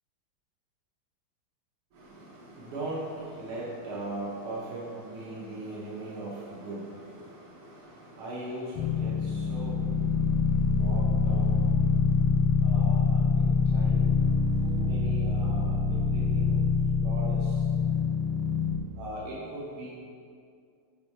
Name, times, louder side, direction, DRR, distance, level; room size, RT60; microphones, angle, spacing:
voice 1, 1.9-9.9 10.7-11.7 12.6-14.1 14.6-16.6 17.0-17.5 19.0-19.9, right 1 dB, 90° right, -7 dB, 1.9 m, -39 dB
sound 1, 8.8-18.8, left 5 dB, 75° left, 1.3 m, -25 dB
6.8 x 4.5 x 4.2 m, 2.3 s
omnidirectional pair, 2.3 m